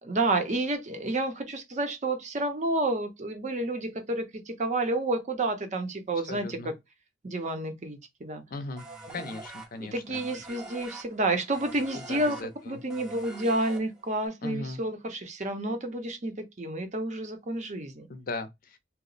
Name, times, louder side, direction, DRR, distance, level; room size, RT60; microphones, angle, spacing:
voice 1, 0.0-6.7 7.2-8.4 9.1-9.2 9.8-12.4 12.7-18.1, right 2 dB, 40° right, 0.6 m, -30 dB
voice 2, 6.2-6.7 8.5-8.8 9.1-10.4 11.9-12.8 14.4-14.8 18.1-18.8, left 3 dB, 50° left, 0.5 m, -38 dB
sound 1, 8.8-14.3, right 2 dB, 5° right, 0.7 m, -44 dB
2.8 x 2.0 x 3.9 m
head